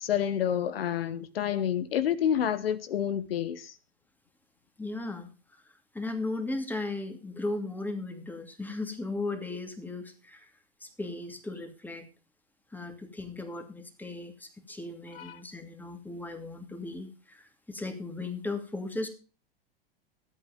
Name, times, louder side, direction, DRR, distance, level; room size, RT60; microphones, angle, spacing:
voice 1, 0.0-3.7 15.1-15.4, left 9 dB, 80° left, 1.0 m, -29 dB
voice 2, 4.8-5.3 5.9-10.5 10.8-12.1 12.7-19.1, left 2 dB, 5° left, 2.7 m, -36 dB
14.0 x 8.5 x 5.2 m
hypercardioid pair, 95°, 29 cm